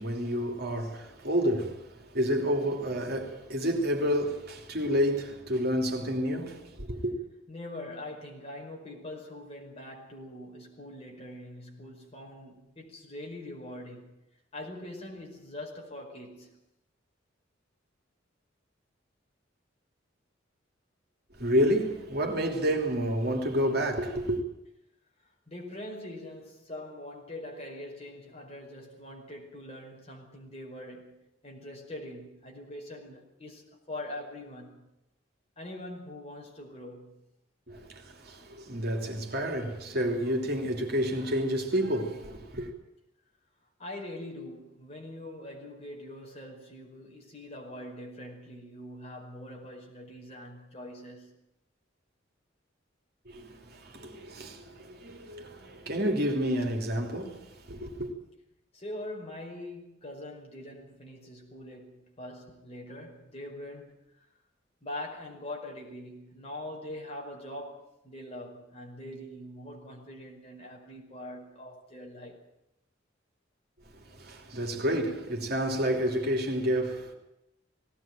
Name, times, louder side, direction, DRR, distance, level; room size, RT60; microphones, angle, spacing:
voice 1, 0.0-7.1 21.4-24.4 37.7-42.7 53.3-58.1 73.9-77.1, equal, 55° right, 3.0 m, -29 dB
voice 2, 7.5-14.2 14.5-16.6 25.5-31.2 31.4-34.9 35.6-37.3 43.8-51.3 58.7-64.3 64.8-72.4, left 1 dB, 30° left, 5.2 m, -43 dB
19.5 x 17.5 x 9.0 m
head